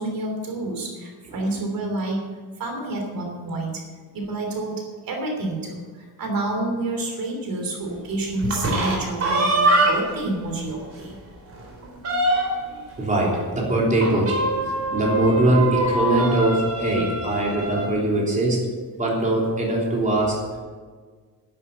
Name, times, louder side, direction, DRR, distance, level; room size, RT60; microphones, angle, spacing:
voice 1, 0.0-2.3 2.6-3.8 4.1-11.2, right 2 dB, 65° right, 2 dB, 3.2 m, -29 dB
sound 1, 8.4-10.2 10.6-10.7 11.1-11.2 11.5-12.7 14.0-17.9, right 2 dB, 40° right, 4.1 m, -23 dB
voice 2, 11.8-12.5 13.0-14.4 14.9-18.7 18.9-20.4, right 1 dB, 20° right, -3 dB, 3.4 m, -22 dB
11.5 x 11.0 x 7.8 m, 1.5 s
wide cardioid pair, 180°, 37 cm